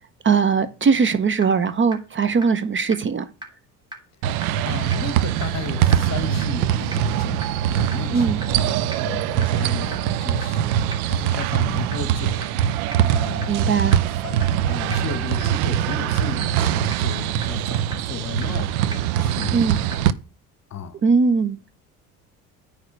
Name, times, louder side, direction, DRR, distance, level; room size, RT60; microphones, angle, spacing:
voice 1, 0.2-3.3 8.1-8.4 13.5-13.9 19.5-19.8 21.0-21.6, right 5 dB, 25° right, 0.7 m, -20 dB
sound 1, 1.4-1.5 1.9-2.0 2.4-2.5 2.9-3.0 3.4-3.5 3.9-4.0 4.4-4.5 4.9-5.0 5.4-5.5 5.9-6.0 6.4-6.5 6.9-7.0 7.4-7.5 7.9-8.0 8.4-8.5 8.9-9.0 9.4-9.5 9.9-10.0 10.4-10.5 10.9-11.0 11.4-11.5 11.9-12.0 12.4-12.5 12.9-13.0 13.4-13.5 13.9-14.0 14.4-14.5 14.9-15.0 15.4-15.5 15.9-16.0 16.4-16.5 16.9-17.0 17.4-17.5 17.9-18.0 18.4-18.5 18.9-19.0 19.4-19.5 19.9-20.0, right 1 dB, 10° right, 2.5 m, -34 dB
voice 2, 4.2-14.4 14.7-18.8 19.2-20.0 20.7-21.0, left 7 dB, 35° left, 1.0 m, -34 dB
sound 2, 4.2-20.1, right 11 dB, 70° right, 0.6 m, -22 dB
9.4 x 3.4 x 6.3 m
hypercardioid pair, 60°, 44 cm